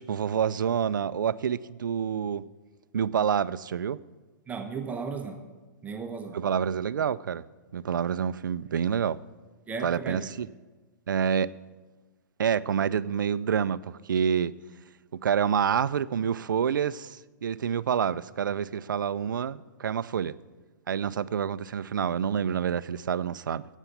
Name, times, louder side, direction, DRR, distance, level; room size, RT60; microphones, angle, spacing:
voice 1, 0.0-2.5 2.9-4.0 6.3-7.4 7.7-9.2 9.8-10.5 11.1-11.5 12.4-14.5 15.1-20.3 20.9-23.7, right 8 dB, 85° right, 17 dB, 0.4 m, -27 dB
voice 2, 4.5-5.4 5.8-6.4 9.7-10.3, right 5 dB, 15° right, 5 dB, 1.0 m, -35 dB
9.6 x 8.2 x 8.3 m, 1.2 s
hypercardioid pair, 130°, 10 cm